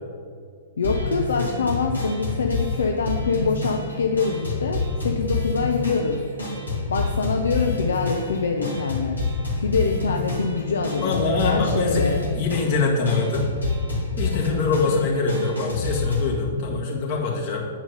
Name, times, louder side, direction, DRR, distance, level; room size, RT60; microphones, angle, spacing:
sound 1, 0.8-16.4, left 3 dB, 85° left, 2.2 m, -28 dB
voice 1, 0.8-6.2 6.9-9.2 9.5-12.2, left 4 dB, 65° left, 3 dB, 0.6 m, -25 dB
voice 2, 10.9-13.5 14.2-17.7, left 3 dB, 40° left, -2 dB, 1.8 m, -24 dB
9.1 x 4.7 x 5.3 m, 2.2 s
figure-of-eight pair, 110°, 0 cm